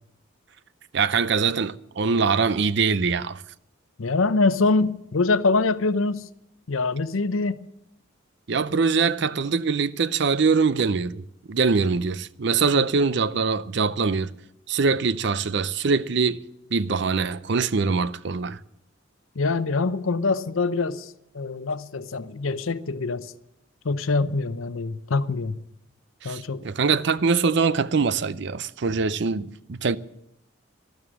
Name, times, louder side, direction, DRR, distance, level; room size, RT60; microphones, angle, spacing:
voice 1, 0.9-3.4 8.5-11.2 11.5-14.3 14.7-16.4 16.7-18.6 26.2-30.0, right 5 dB, 60° right, 0.5 m, -23 dB
voice 2, 4.0-6.3 6.7-7.6 19.4-23.3 23.8-25.6 26.2-26.6, left 3 dB, 90° left, 0.7 m, -24 dB
12.5 x 12.5 x 7.5 m
head